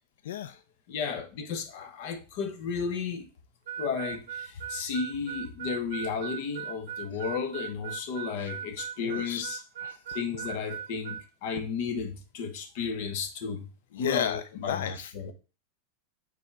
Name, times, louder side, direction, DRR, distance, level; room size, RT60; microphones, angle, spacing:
voice 1, 0.2-0.6 7.1-7.2 8.4-8.5 9.0-9.4 9.8-10.2 11.5-11.6 13.9-15.1, left 9 dB, 90° left, 0.4 m, -34 dB
voice 2, 0.9-3.3 3.8-9.6 10.1-13.7 14.0-15.3, left 5 dB, 50° left, 1.2 m, -33 dB
Harmonica, 3.7-11.3, right 9 dB, 85° right, 0.7 m, -38 dB
7.4 x 4.1 x 3.5 m
supercardioid pair, 165°, 0 cm